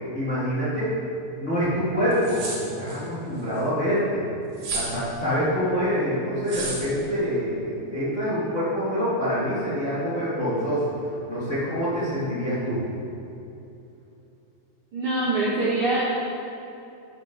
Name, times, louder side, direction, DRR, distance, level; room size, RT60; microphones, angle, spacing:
voice 1, 0.1-0.9 1.4-4.2 4.7-10.8 11.3-12.8, equal, 25° left, -11 dB, 1.8 m, -26 dB
sound 1, 2.1-3.0 4.6-5.0 6.5-6.9, right 3 dB, 60° right, 2.8 m, -31 dB
voice 2, 14.9-16.0, right 2 dB, 80° right, -7 dB, 1.2 m, -24 dB
12.0 x 7.6 x 3.9 m, 2.8 s
omnidirectional pair, 4.6 m